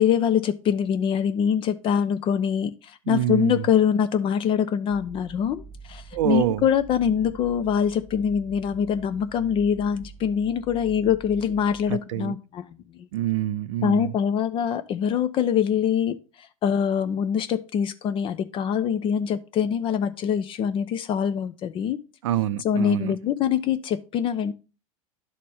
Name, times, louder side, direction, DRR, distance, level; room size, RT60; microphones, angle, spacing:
voice 1, 0.0-13.1 13.8-22.0 22.6-24.5, left 8 dB, 30° left, 0.4 m, -24 dB
voice 2, 3.1-3.6 6.1-6.6 11.9-12.4 13.1-14.1 22.2-23.2, right 13 dB, 60° right, 0.4 m, -26 dB
sound 1, 4.9-12.0, right 4 dB, 5° right, 1.9 m, -45 dB
11.5 x 4.2 x 3.4 m
figure-of-eight pair, 85°, 18 cm